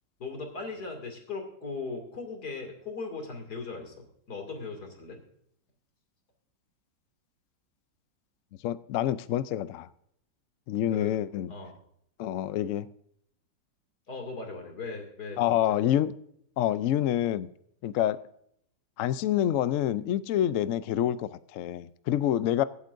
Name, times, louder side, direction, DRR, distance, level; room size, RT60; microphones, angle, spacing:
voice 1, 0.2-5.2 10.9-11.1 11.5-11.7 14.1-15.8, left 4 dB, 60° left, 3.1 m, -38 dB
voice 2, 8.6-9.9 10.7-11.5 12.2-12.9 15.4-16.1 16.6-17.5 17.8-18.3 19.0-22.6, left 11 dB, 80° left, 0.7 m, -27 dB
24.0 x 8.3 x 2.6 m
omnidirectional pair, 2.0 m